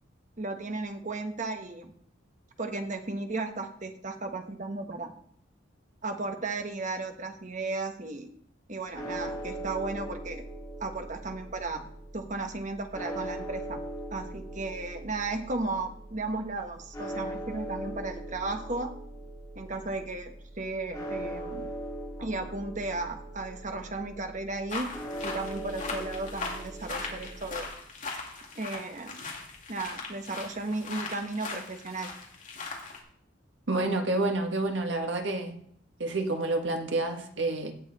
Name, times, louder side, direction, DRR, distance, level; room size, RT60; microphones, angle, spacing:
voice 1, 0.4-1.9 2.6-5.1 6.0-8.3 8.7-10.5 10.8-11.9 12.1-13.8 14.1-19.0 19.5-21.7 22.2-27.7 28.5-29.2 29.7-32.1, right 3 dB, 40° right, 5 dB, 1.3 m, -35 dB
sound 1, 8.9-27.6, right 1 dB, 20° left, 3.1 m, -40 dB
sound 2, 24.7-33.0, left 3 dB, 40° left, 2.6 m, -39 dB
voice 2, 33.7-35.5 36.0-37.7, right 2 dB, 65° right, 3 dB, 1.8 m, -28 dB
17.0 x 7.3 x 4.2 m, 0.65 s
head